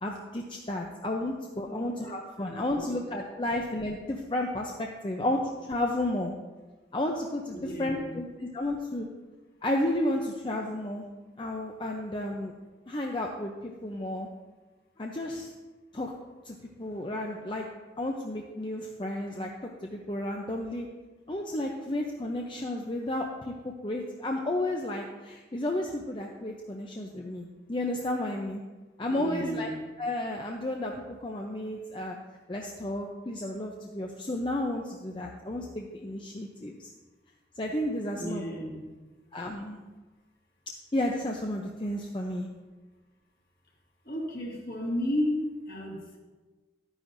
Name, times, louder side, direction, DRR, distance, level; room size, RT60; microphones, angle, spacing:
voice 1, 0.0-5.4 5.7-6.3 6.9-9.1 9.6-11.1 11.4-12.5 12.9-14.3 15.0-15.5 15.9-16.1 16.4-17.7 18.0-20.9 21.3-28.6 29.0-29.7 30.0-30.9 31.2-32.2 32.5-36.9 37.6-38.5 39.3-39.8 40.9-42.5, left 1 dB, 25° left, 1 dB, 0.6 m, -32 dB
voice 2, 1.7-2.1 2.4-2.9 7.5-8.2 29.0-29.8 38.1-38.8 44.1-46.2, equal, 50° left, -2 dB, 2.0 m, -33 dB
12.0 x 9.8 x 2.6 m, 1.3 s
head